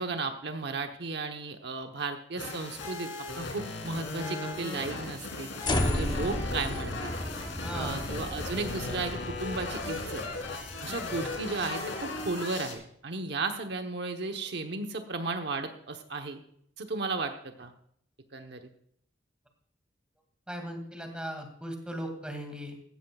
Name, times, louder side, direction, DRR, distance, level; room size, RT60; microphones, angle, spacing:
voice 1, 0.0-3.1 3.4-7.1 7.7-10.2 10.8-16.4 16.8-17.7 18.3-18.6, right 3 dB, 65° right, 5 dB, 1.0 m, -34 dB
sound 1, 2.4-12.7, left 2 dB, 90° left, 3.3 m, -37 dB
sound 2, 5.6-11.9, left 1 dB, 25° left, 0.9 m, -34 dB
voice 2, 7.6-8.0 20.5-22.8, equal, 5° right, 4 dB, 2.2 m, -38 dB
16.5 x 14.0 x 2.4 m, 0.68 s
head